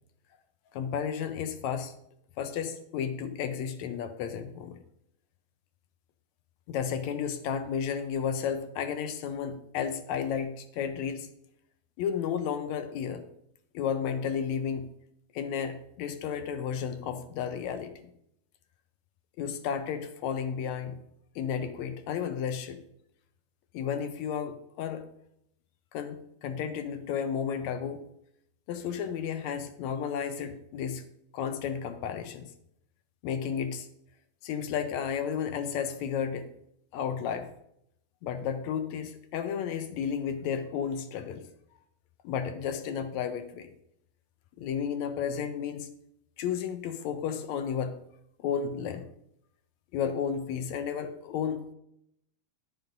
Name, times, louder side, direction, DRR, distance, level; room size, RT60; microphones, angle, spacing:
voice 1, 0.7-1.9 2.4-4.8 6.7-11.3 12.0-13.3 13.7-14.9 15.3-18.1 19.4-21.0 21.4-22.8 23.7-25.0 25.9-28.0 28.7-31.1 31.3-32.5 33.2-33.9 34.4-36.5 36.9-37.5 38.2-41.5 42.2-43.7 44.6-45.9 46.4-48.0 48.4-49.1 49.9-51.6, left 7 dB, 75° left, 9 dB, 1.8 m, -32 dB
11.0 x 5.9 x 5.3 m, 0.75 s
omnidirectional pair, 3.9 m